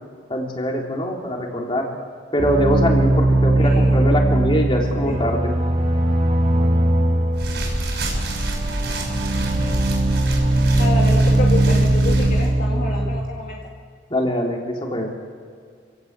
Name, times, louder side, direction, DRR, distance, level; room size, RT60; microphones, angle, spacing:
voice 1, 0.3-1.9 2.3-5.4 14.1-15.1, equal, 25° left, 0 dB, 3.4 m, -23 dB
sound 1, 2.4-13.2, right 1 dB, 40° right, 3.1 m, -19 dB
voice 2, 3.6-4.0 5.1-5.2 10.8-13.7, left 2 dB, 45° left, -2 dB, 2.2 m, -28 dB
sound 2, 7.3-12.5, right 1 dB, 60° right, 6.0 m, -27 dB
27.5 x 17.0 x 8.2 m, 2.1 s
head